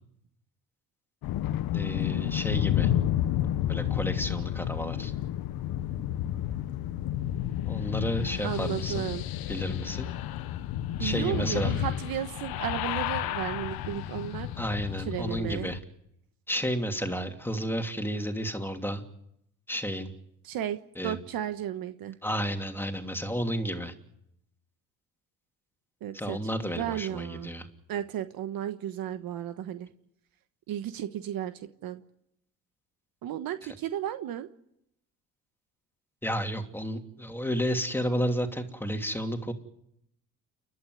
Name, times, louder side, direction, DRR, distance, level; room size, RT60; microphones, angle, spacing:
sound 1, 1.2-15.8, left 12 dB, 75° left, 1.1 m, -31 dB
voice 1, 1.7-2.9 3.7-5.1 7.6-9.1 9.5-10.1 11.0-11.7 14.6-15.8 16.5-19.0 19.7-20.1 21.0-21.2 22.2-23.9 26.1-27.7 36.2-39.5, equal, 5° left, 5 dB, 2.9 m, -32 dB
voice 2, 8.4-9.2 11.0-14.5 15.1-15.7 20.4-22.2 26.0-26.4 26.6-27.5 27.9-29.9 30.7-32.0 33.2-34.5, right 11 dB, 65° right, 10 dB, 1.3 m, -34 dB
29.5 x 12.0 x 9.5 m, 0.78 s
supercardioid pair, 80°, 37 cm